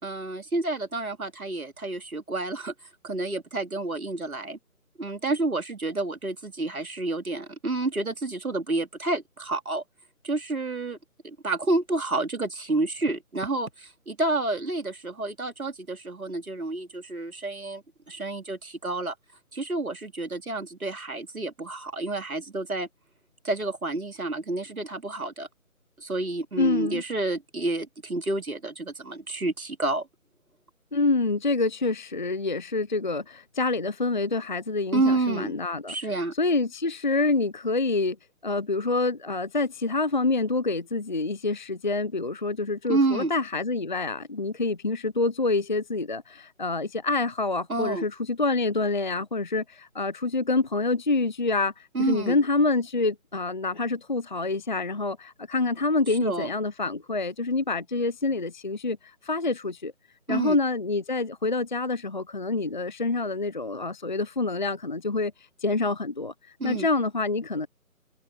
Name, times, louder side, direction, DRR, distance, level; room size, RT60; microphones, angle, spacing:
voice 1, 0.0-2.7 3.0-4.6 5.0-9.8 10.2-11.0 11.2-19.1 19.5-22.9 23.4-25.5 26.0-30.1 34.9-35.5 35.9-36.3 42.9-43.3 47.7-48.0 51.9-52.4 56.1-56.5 60.3-60.6 66.6-66.9, right 2 dB, 75° right, 3.4 m, -29 dB
voice 2, 26.6-27.0 30.9-36.0 36.4-38.2 38.4-59.9 60.3-67.7, left 3 dB, 35° left, 0.7 m, -27 dB
figure-of-eight pair, 155°, 43 cm